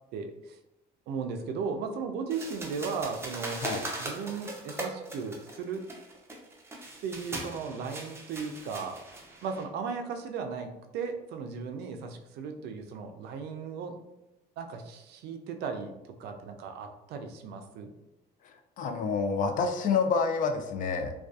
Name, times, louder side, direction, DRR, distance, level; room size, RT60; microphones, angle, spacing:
voice 1, 0.1-0.6 1.1-3.6 4.0-5.8 7.0-9.0 9.4-13.9 14.6-15.9 16.2-17.9, right 5 dB, 75° right, 6 dB, 0.4 m, -36 dB
sound 1, 2.3-9.6, right 2 dB, 15° right, 0.5 m, -40 dB
voice 2, 18.8-21.1, left 5 dB, 50° left, 5 dB, 0.4 m, -28 dB
2.5 x 2.3 x 2.3 m, 0.93 s
cardioid pair, 110°, 17 cm